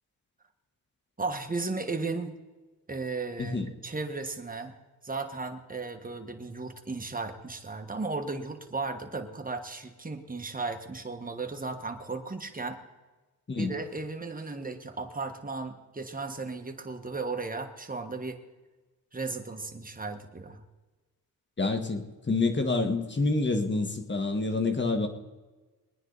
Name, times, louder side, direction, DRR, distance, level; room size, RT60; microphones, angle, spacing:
voice 1, 1.2-2.4 2.9-3.6 3.8-4.7 5.0-12.8 13.5-18.4 19.1-20.6, right 3 dB, 20° right, 5 dB, 1.5 m, -35 dB
voice 2, 3.4-3.7 13.5-13.8 21.6-25.1, left 3 dB, 30° left, 5 dB, 1.7 m, -27 dB
22.5 x 9.7 x 4.1 m, 1.2 s
cardioid pair, 100°, 37 cm